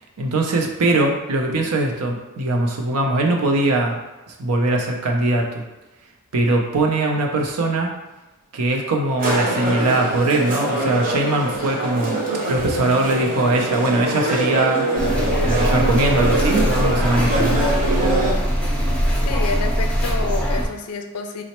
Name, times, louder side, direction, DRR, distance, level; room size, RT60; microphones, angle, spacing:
voice 1, 0.2-4.0 4.3-5.6 6.3-7.9 8.5-12.2 12.5-14.9 15.4-17.6, right 2 dB, 85° right, 1 dB, 0.6 m, -21 dB
sound 1, 9.2-18.3, right 2 dB, 40° right, 0.7 m, -23 dB
sound 2, 15.0-20.7, equal, 5° left, 0.5 m, -21 dB
voice 2, 19.2-21.4, left 4 dB, 90° left, 6 dB, 0.4 m, -28 dB
4.0 x 2.0 x 2.9 m, 1.1 s
head